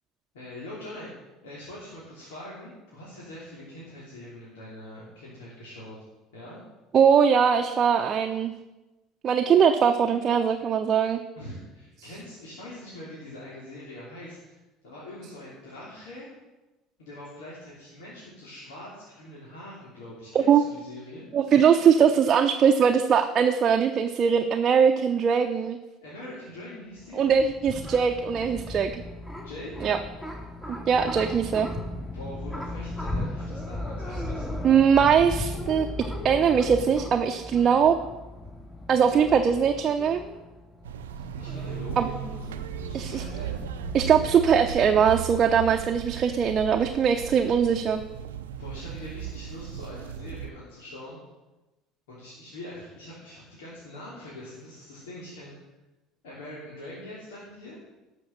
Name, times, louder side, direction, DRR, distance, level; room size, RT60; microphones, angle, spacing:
voice 1, 0.3-1.1 1.4-6.0 6.3-6.6 11.3-14.6 14.8-16.3 17.0-21.3 26.0-27.2 29.4-29.9 32.1-34.6 41.3-43.5 48.6-51.2 52.1-55.5 56.2-57.8, left 1 dB, 80° left, -7 dB, 3.1 m, -43 dB
voice 2, 6.9-8.5 9.2-11.2 20.3-20.6 21.3-25.8 27.1-29.0 29.8-30.0 30.7-31.7 34.6-35.9 36.2-38.0 38.9-40.2 42.0-42.1 42.9-43.2 43.9-48.0, right 7 dB, 45° right, 4 dB, 0.7 m, -21 dB
sound 1, 27.0-45.1, left 1 dB, 15° left, 2.6 m, -37 dB
sound 2, 40.8-50.5, right 8 dB, 85° right, 0.6 m, -36 dB
12.0 x 6.1 x 6.6 m, 1.1 s
hypercardioid pair, 70°, 0 cm